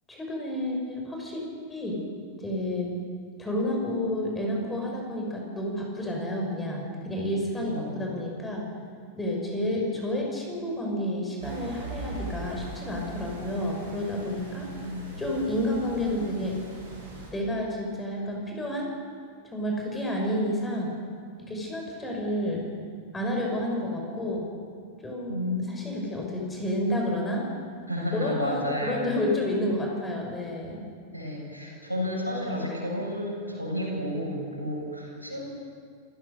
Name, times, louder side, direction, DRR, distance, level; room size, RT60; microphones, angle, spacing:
voice 1, 0.1-1.4 1.7-2.0 2.4-2.9 3.4-8.6 9.2-14.7 15.2-16.6 17.3-18.9 19.4-20.9 21.4-22.6 23.1-24.4 25.0-25.4 25.7-27.5 28.1-30.8, left 1 dB, 10° left, 0 dB, 6.0 m, -30 dB
voice 2, 7.7-8.1 14.5-15.0 25.3-25.7 26.0-26.1 27.9-29.1 31.1-35.4, left 1 dB, 85° left, -3 dB, 7.5 m, -31 dB
sound 1, 11.4-17.3, right 2 dB, 70° right, 7.1 m, -40 dB
28.0 x 15.5 x 6.9 m, 2.1 s
figure-of-eight pair, 90°, 0 cm